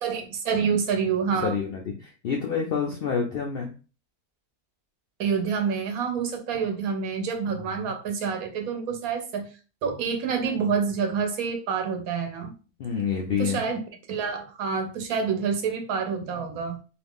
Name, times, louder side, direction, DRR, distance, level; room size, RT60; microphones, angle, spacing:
voice 1, 0.0-1.6 5.2-9.5 9.8-12.5 13.4-13.8 14.1-16.8, right 6 dB, 75° right, 1.1 m, -27 dB
voice 2, 1.3-3.7 7.5-7.9 12.8-13.6 16.3-16.5, left 6 dB, 75° left, 0.5 m, -28 dB
2.7 x 2.4 x 3.6 m
omnidirectional pair, 1.5 m